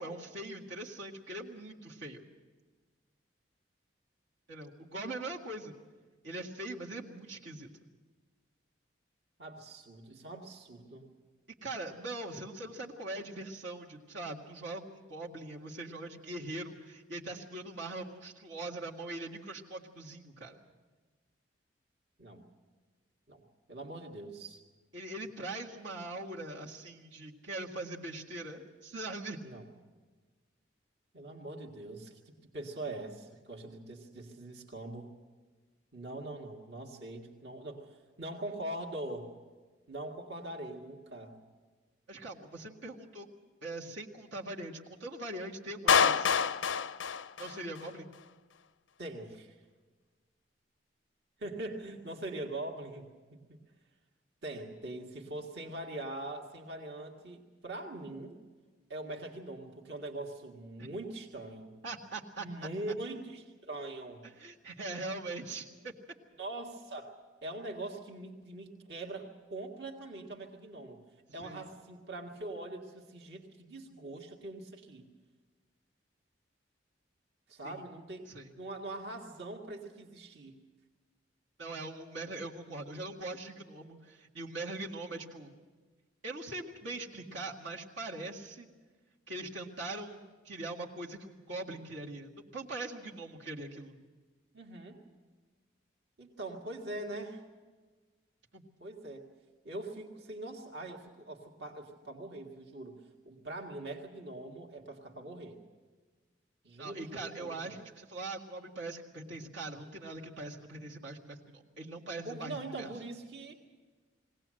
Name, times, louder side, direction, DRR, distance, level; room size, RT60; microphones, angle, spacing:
voice 1, 0.0-2.2 4.5-5.7 6.2-7.7 11.6-20.6 24.9-29.4 42.1-43.3 43.6-46.3 47.4-48.1 60.8-60.9 61.8-63.0 64.2-65.9 71.4-71.7 77.6-77.8 78.3-78.5 81.6-85.5 86.2-88.7 89.3-94.0 98.5-98.6 106.8-112.9, right 2 dB, 75° right, -3 dB, 2.0 m, -42 dB
voice 2, 9.4-11.1 22.2-22.4 23.3-23.4 23.7-24.6 29.4-29.7 31.1-32.2 32.5-35.1 35.9-37.9 38.2-39.3 39.9-41.4 49.0-49.6 51.4-53.6 54.4-58.4 58.9-61.8 62.4-64.3 66.4-67.1 67.4-71.0 71.3-75.1 77.5-78.3 78.6-80.6 94.5-95.0 96.2-97.4 98.8-99.3 99.6-105.6 106.6-107.8 112.2-113.5, right 2 dB, 60° right, 0 dB, 1.9 m, -42 dB
Clapping, 45.9-47.9, left 6 dB, 80° left, 0.5 m, -27 dB
21.5 x 17.5 x 7.7 m, 1.4 s
head